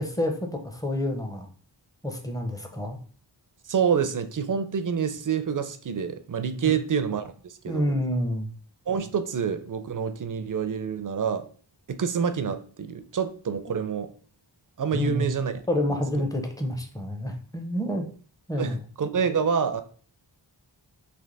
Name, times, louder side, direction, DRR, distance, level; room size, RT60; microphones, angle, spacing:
voice 1, 0.0-1.5 2.0-3.0 6.6-6.7 7.7-8.5 14.9-15.3 15.7-18.0 18.5-18.8, left 1 dB, 10° left, 4 dB, 0.6 m, -28 dB
voice 2, 3.7-7.9 8.9-11.5 11.9-14.1 14.8-15.5 15.9-16.0 18.6-19.8, right 7 dB, 45° right, 11 dB, 0.5 m, -27 dB
3.3 x 2.9 x 3.8 m, 0.43 s
wide cardioid pair, 90°, 45 cm